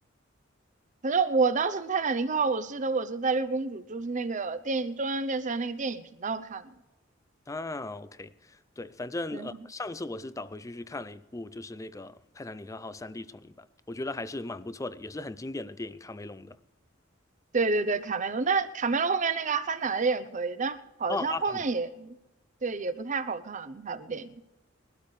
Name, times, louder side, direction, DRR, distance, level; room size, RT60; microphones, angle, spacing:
voice 1, 1.0-6.6 9.3-9.5 17.5-22.1 22.6-24.3, right 4 dB, 40° right, 0.7 m, -29 dB
voice 2, 7.5-8.3 8.8-16.6 21.1-21.7, left 2 dB, 15° left, 0.4 m, -37 dB
21.0 x 12.5 x 3.2 m
head